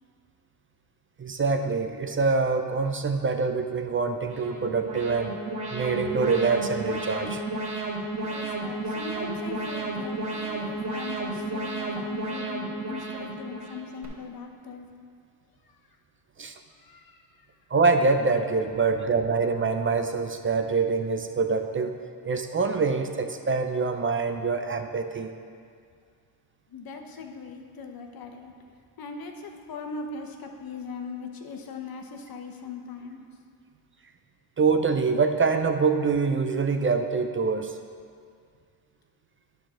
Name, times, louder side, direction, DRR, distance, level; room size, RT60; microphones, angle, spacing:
voice 1, 1.2-5.3 5.7-7.4 16.4-16.5 17.7-21.9 22.2-25.3 34.6-37.8, right 4 dB, 35° right, 6 dB, 0.5 m, -25 dB
Alarm, 4.2-14.1, right 2 dB, 55° right, 2.3 m, -33 dB
voice 2, 8.3-14.9 16.8-17.2 18.8-18.9 26.7-28.5 29.0-33.3, left 4 dB, 65° left, 3 dB, 1.0 m, -39 dB
10.5 x 4.3 x 6.2 m, 2.2 s
cardioid pair, 100°, 38 cm